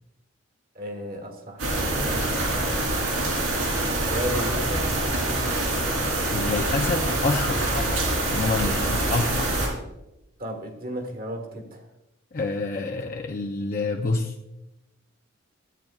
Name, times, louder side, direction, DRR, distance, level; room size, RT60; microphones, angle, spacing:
voice 1, 0.7-2.7 3.7-5.1 9.0-9.6 10.4-11.8, equal, 45° right, 3 dB, 1.6 m, -35 dB
sound 1, 1.6-9.7, right 2 dB, 90° right, 3.5 m, -25 dB
voice 2, 6.3-9.5 12.3-14.3, left 3 dB, 45° left, 2 dB, 0.5 m, -28 dB
13.5 x 9.0 x 2.4 m, 0.91 s
head